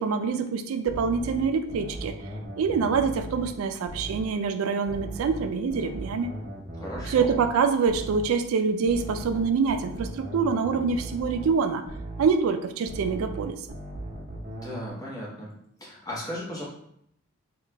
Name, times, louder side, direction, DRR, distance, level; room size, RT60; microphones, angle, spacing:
voice 1, 0.0-2.1 2.6-6.3 7.1-11.8 12.2-13.6, right 5 dB, 75° right, 8 dB, 0.3 m, -25 dB
sound 1, 0.9-4.4 4.9-8.4 8.9-12.4 12.9-14.9, right 1 dB, 35° right, 0.7 m, -38 dB
voice 2, 6.7-7.3 14.4-15.5 15.8-16.6, left 1 dB, 15° left, -5 dB, 0.8 m, -36 dB
2.8 x 2.3 x 3.3 m, 0.71 s
head